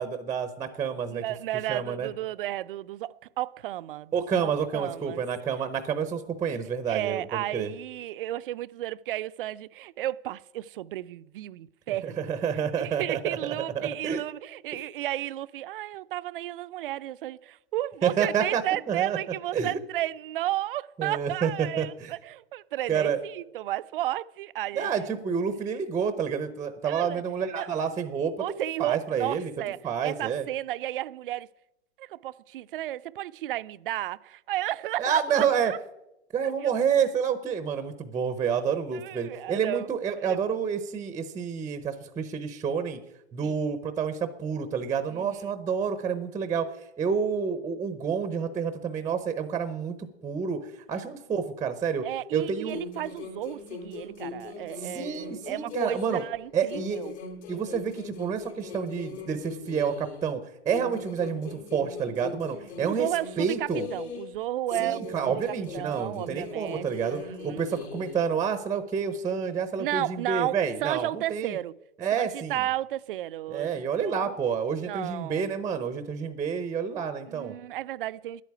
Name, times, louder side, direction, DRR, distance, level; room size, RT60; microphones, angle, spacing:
voice 1, 0.0-1.2 1.7-2.1 4.1-7.7 12.0-14.2 18.0-18.6 18.9-19.2 19.5-19.8 21.0-22.1 22.9-23.2 24.8-28.3 28.8-29.5 29.8-30.4 35.0-35.7 36.3-43.0 43.3-46.7 47.0-50.0 50.2-52.1 52.3-52.8 54.8-56.2 56.5-57.0 57.5-63.1 63.4-63.9 64.8-71.6 72.0-72.6 73.5-77.5, right 7 dB, 10° right, 0.6 m, -29 dB
voice 2, 1.1-5.2 6.9-12.3 12.8-25.1 26.8-27.2 27.5-27.7 28.4-31.5 32.0-35.8 36.4-36.7 38.9-39.9 40.2-40.4 43.4-43.6 45.1-45.5 50.9-51.1 52.0-57.1 61.8-62.0 62.8-67.6 69.7-71.7 72.1-74.3 74.9-75.5 77.3-78.4, right 14 dB, 50° right, 0.5 m, -33 dB
sound 1, 52.7-56.4 56.7-60.3 60.7-64.4 64.7-68.3, left 4 dB, 70° left, 3.9 m, -40 dB
10.5 x 8.4 x 9.4 m
hypercardioid pair, 135°, 34 cm